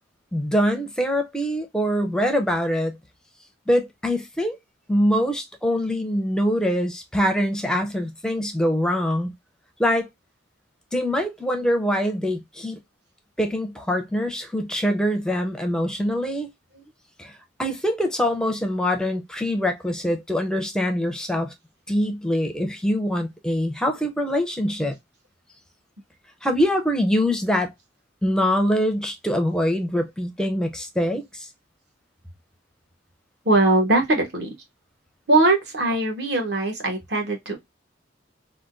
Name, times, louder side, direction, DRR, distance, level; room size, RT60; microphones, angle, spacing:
voice 1, 0.3-3.0 3.7-4.6 4.9-9.3 9.8-10.1 10.9-12.8 13.4-16.5 17.2-17.3 17.6-21.5 21.9-24.9 26.4-27.7 28.2-31.5, equal, 5° left, 0.5 m, -24 dB
voice 2, 33.4-34.5 35.3-37.6, right 2 dB, 60° right, 1.1 m, -21 dB
3.5 x 2.2 x 2.4 m
head